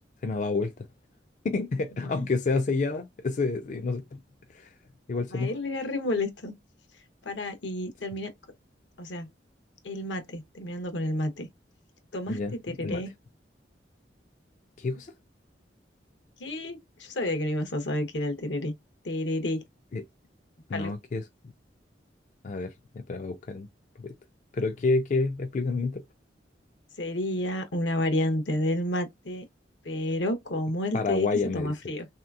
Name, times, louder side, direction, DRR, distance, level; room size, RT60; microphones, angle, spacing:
voice 1, 0.2-0.7 1.4-4.2 4.5-4.7 5.1-5.5 12.3-13.0 14.8-15.1 19.9-20.0 20.7-21.2 22.4-23.7 24.0-24.1 24.5-26.0 30.9-31.9, left 3 dB, 45° left, 0.4 m, -29 dB
voice 2, 5.3-6.5 7.2-8.3 9.0-9.3 9.8-11.5 12.1-13.1 16.4-18.7 19.0-19.6 20.7-20.9 27.0-29.4 29.8-31.3 31.5-32.1, left 1 dB, 80° left, 0.9 m, -30 dB
3.2 x 2.8 x 2.3 m
head